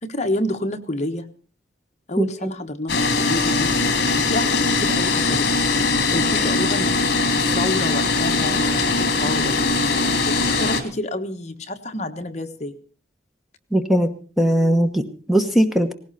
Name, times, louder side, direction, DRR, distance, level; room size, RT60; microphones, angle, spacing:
voice 1, 0.0-1.3 2.1-3.7 4.2-5.5 6.1-12.8, left 1 dB, 40° left, 5 dB, 1.3 m, -29 dB
sound 1, 2.9-10.8, left 3 dB, 55° left, 2.7 m, -21 dB
voice 2, 13.7-14.1 14.4-15.9, right 1 dB, ahead, 6 dB, 1.0 m, -19 dB
18.5 x 16.5 x 4.2 m, 0.40 s
head